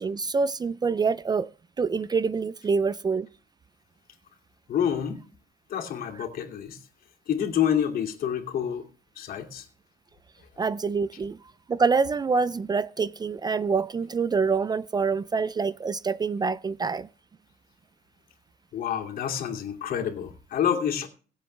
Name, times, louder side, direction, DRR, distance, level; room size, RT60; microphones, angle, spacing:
voice 1, 0.0-1.5 1.8-3.3 10.6-11.4 11.7-17.1, right 5 dB, 25° right, 0.5 m, -26 dB
voice 2, 4.7-5.2 5.7-6.8 7.3-8.8 9.2-9.7 18.7-21.1, left 9 dB, 60° left, 2.6 m, -28 dB
23.0 x 7.8 x 3.4 m
cardioid pair, 110°, 17 cm